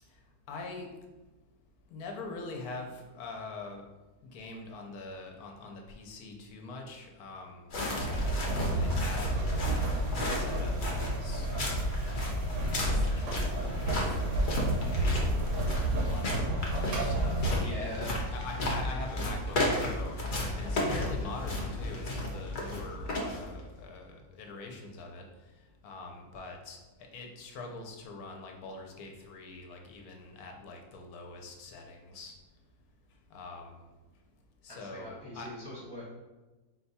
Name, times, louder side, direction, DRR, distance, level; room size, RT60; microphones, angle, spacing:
voice 1, 0.5-0.9 1.9-3.8 4.2-11.5 12.0-14.2 14.5-15.6 16.0-20.2 20.6-25.2 25.8-26.8 27.1-32.3 33.3-33.8 34.6-35.5, left 3 dB, 75° left, 2 dB, 1.1 m, -44 dB
sound 1, 7.7-23.7, left 1 dB, 45° left, 0.7 m, -33 dB
sound 2, 8.0-17.6, right 1 dB, 60° right, 1.0 m, -31 dB
voice 2, 17.6-18.1 34.7-36.0, left 1 dB, 20° right, -6 dB, 0.7 m, -42 dB
4.3 x 2.3 x 4.1 m, 1.2 s
omnidirectional pair, 1.6 m